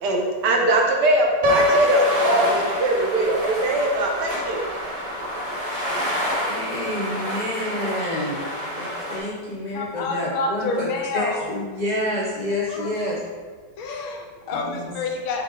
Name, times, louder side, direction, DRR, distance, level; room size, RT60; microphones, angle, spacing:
voice 1, 0.0-4.6, right 2 dB, 65° right, 0 dB, 1.3 m, -21 dB
sound 1, 1.4-9.2, equal, 20° right, 1.6 m, -28 dB
Piano, 1.4-3.4, left 3 dB, 40° right, 0.6 m, -23 dB
voice 2, 6.5-8.5 8.8-10.9 11.1-13.2 14.6-14.9, left 1 dB, 50° left, -6 dB, 0.4 m, -28 dB
voice 3, 9.7-11.5 12.7-12.9 13.8-15.4, left 3 dB, 85° left, 2 dB, 1.6 m, -28 dB
6.8 x 4.3 x 4.0 m, 1.5 s
omnidirectional pair, 2.2 m